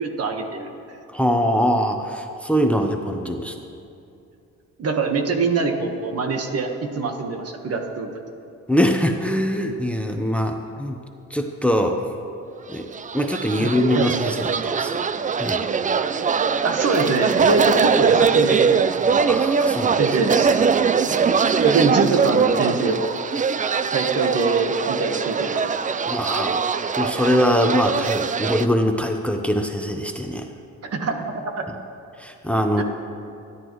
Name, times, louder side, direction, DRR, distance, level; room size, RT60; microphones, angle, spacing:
voice 1, 0.0-1.0 4.8-8.1 13.6-14.1 16.6-18.8 19.9-20.5 21.6-23.2 23.9-26.0 30.9-31.6 32.8-32.9, right 3 dB, 50° right, 4 dB, 1.5 m, -24 dB
voice 2, 1.1-3.6 8.7-11.0 11.3-12.1 12.7-15.0 15.4-15.6 19.3-20.0 26.1-26.7 27.0-30.5 31.7-31.8 32.2-32.8, equal, 5° left, 4 dB, 0.9 m, -23 dB
sound 1, 12.8-28.7, right 6 dB, 25° right, 0.4 m, -21 dB
28.5 x 10.0 x 3.2 m, 2.6 s
cardioid pair, 90°, 30 cm